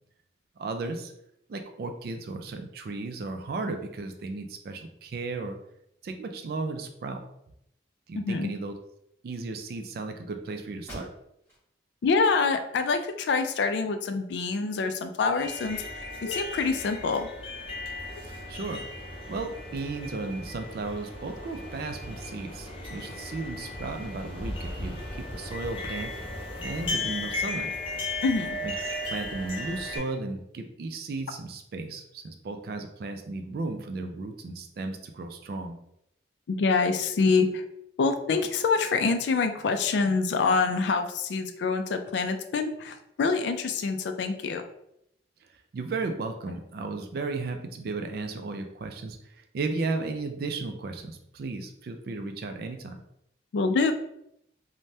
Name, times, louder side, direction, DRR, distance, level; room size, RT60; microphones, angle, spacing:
voice 1, 0.6-1.1 1.5-5.6 6.0-7.2 8.1-8.8 9.2-11.1 18.5-18.9 19.3-26.2 26.6-27.7 28.6-28.7 29.0-35.8 45.7-53.0, right 3 dB, 55° right, 6 dB, 0.3 m, -35 dB
voice 2, 8.2-8.5 12.0-15.8 16.2-17.3 28.2-28.6 36.5-37.6 38.0-44.6 53.5-53.9, left 4 dB, 75° left, 7 dB, 0.3 m, -26 dB
sound 1, 10.9-11.7 12.1-12.2 12.8-13.7, equal, 10° left, 1.2 m, -47 dB
sound 2, 15.4-30.0, left 2 dB, 30° left, 0.6 m, -36 dB
3.2 x 2.1 x 2.7 m, 0.77 s
head